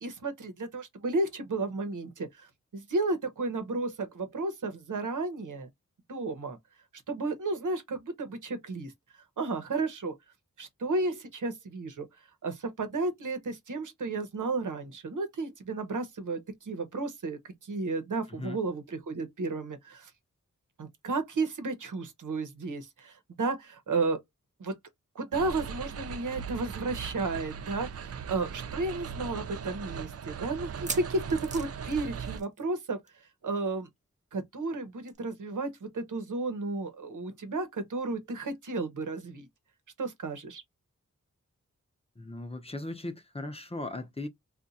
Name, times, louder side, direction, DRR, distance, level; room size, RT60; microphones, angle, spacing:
voice 1, 0.0-5.7 6.1-6.6 7.1-8.9 9.4-10.1 10.6-12.1 12.4-20.1 20.8-24.2 24.6-24.7 25.1-33.0 33.4-33.9 34.3-39.5 40.0-40.6, right 3 dB, 90° right, 1.0 m, -33 dB
sound 1, 25.3-32.4, right 6 dB, 55° right, 0.4 m, -39 dB
sound 2, 30.6-32.8 33.0-33.3 33.5-33.6 35.1-35.2, right 3 dB, 25° right, 0.7 m, -40 dB
voice 2, 42.2-44.3, left 2 dB, 20° left, 0.6 m, -38 dB
2.4 x 2.4 x 4.0 m
wide cardioid pair, 115°, 30 cm